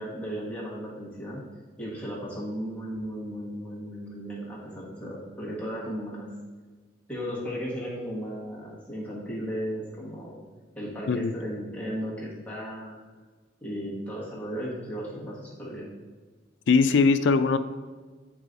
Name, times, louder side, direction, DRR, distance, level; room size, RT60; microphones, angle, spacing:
voice 1, 0.0-1.5 1.8-6.4 7.1-10.4 10.7-13.0 13.6-15.9, equal, 10° left, -6 dB, 1.3 m, -35 dB
voice 2, 16.7-17.6, left 4 dB, 70° left, 11 dB, 0.4 m, -20 dB
8.1 x 4.8 x 2.6 m, 1.4 s
head